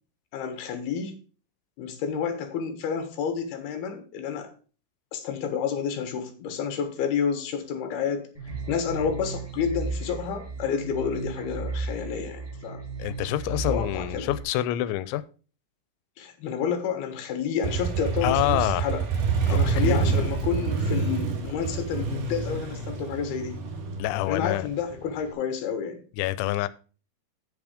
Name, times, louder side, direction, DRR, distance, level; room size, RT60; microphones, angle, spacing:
voice 1, 0.3-1.1 1.8-4.5 5.1-8.3 8.7-12.8 13.7-14.3 16.2-19.1 19.5-23.6 24.3-26.0, left 7 dB, 65° left, 3.1 m, -30 dB
sound 1, 8.3-14.4, right 4 dB, 20° right, 0.7 m, -35 dB
voice 2, 13.0-15.2 18.2-18.8 19.5-20.4 24.0-24.7 26.2-26.7, left 14 dB, 90° left, 3.0 m, -27 dB
Motorcycle, 17.6-25.3, right 5 dB, 55° right, 2.8 m, -27 dB
8.2 x 7.1 x 4.9 m
omnidirectional pair, 5.2 m